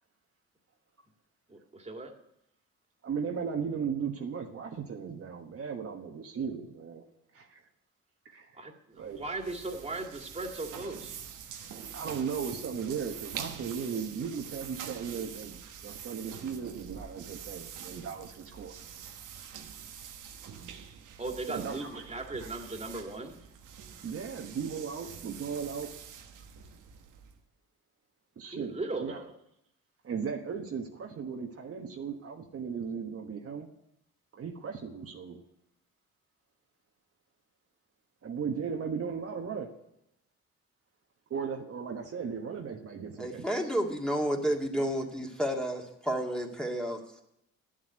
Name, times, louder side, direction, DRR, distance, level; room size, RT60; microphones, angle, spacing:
voice 1, 1.5-2.1 8.5-11.1 21.2-23.3 28.5-29.3, right 2 dB, 20° right, 3 dB, 2.1 m, -38 dB
voice 2, 3.0-7.0 7.3-7.6 8.2-9.2 11.9-18.8 21.5-22.8 24.0-25.9 28.4-29.2 30.0-33.7 34.3-35.4 38.2-39.7 41.3-43.6, right 6 dB, 50° right, 3 dB, 1.3 m, -37 dB
sound 1, 9.0-27.4, right 8 dB, 85° right, 1.3 m, -45 dB
voice 3, 43.2-47.0, equal, ahead, 0 dB, 1.9 m, -31 dB
11.0 x 7.6 x 9.4 m, 0.80 s
cardioid pair, 90°, 30 cm